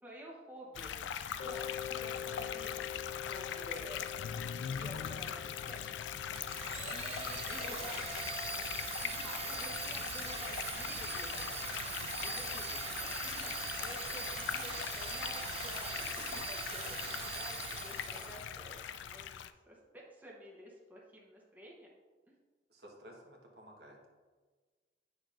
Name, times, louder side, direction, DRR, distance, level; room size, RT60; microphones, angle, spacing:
voice 1, 0.0-1.1 1.4-4.0 4.6-8.0 9.0-11.6 12.2-19.4 19.7-21.9 22.3-22.4, right 1 dB, 10° right, -3 dB, 0.9 m, -51 dB
sound 1, 0.7-19.5, left 8 dB, 85° left, 0.3 m, -41 dB
Mallet percussion, 1.4-10.0, left 11 dB, 50° left, 0.6 m, -47 dB
Domestic sounds home sounds, 6.4-18.5, right 5 dB, 35° right, 0.6 m, -42 dB
voice 2, 7.6-8.1 22.7-24.1, equal, 60° right, 0 dB, 1.3 m, -53 dB
8.6 x 6.2 x 2.5 m, 1.4 s
head